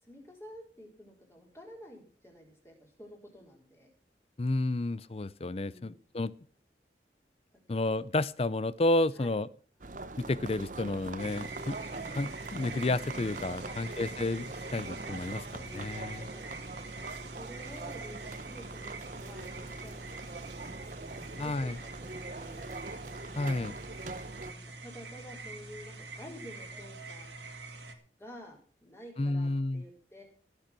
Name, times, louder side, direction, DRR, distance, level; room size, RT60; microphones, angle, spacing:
voice 1, 0.0-3.9 5.6-6.0 9.1-9.4 13.6-13.9 15.6-16.5 17.3-22.8 24.2-27.3 28.2-30.2, equal, 15° left, 0 dB, 4.2 m, -51 dB
voice 2, 4.4-6.3 7.7-9.5 10.2-11.8 12.1-16.3 21.4-21.8 23.4-23.7 29.2-29.8, left 2 dB, 35° left, 19 dB, 0.5 m, -31 dB
sound 1, 9.8-24.5, right 3 dB, 45° right, 0.9 m, -42 dB
sound 2, 11.2-27.9, right 3 dB, 85° right, 2.3 m, -45 dB
17.5 x 6.8 x 6.1 m, 0.42 s
head